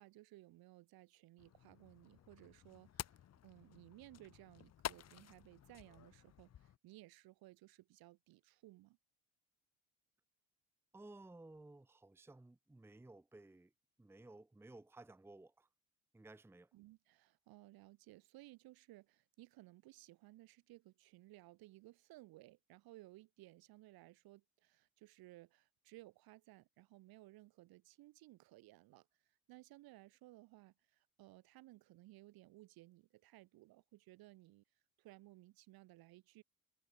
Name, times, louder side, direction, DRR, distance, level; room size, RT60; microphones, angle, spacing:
voice 1, 0.0-9.0 16.7-34.6 35.0-36.4, right 18 dB, 60° right, 3.1 m, -60 dB
sound 1, 1.4-6.8, left 10 dB, 40° left, 1.4 m, -51 dB
voice 2, 10.9-13.7 14.0-15.7 16.1-16.7, right 2 dB, 5° right, 0.9 m, -57 dB
hypercardioid pair, 65°, 41 cm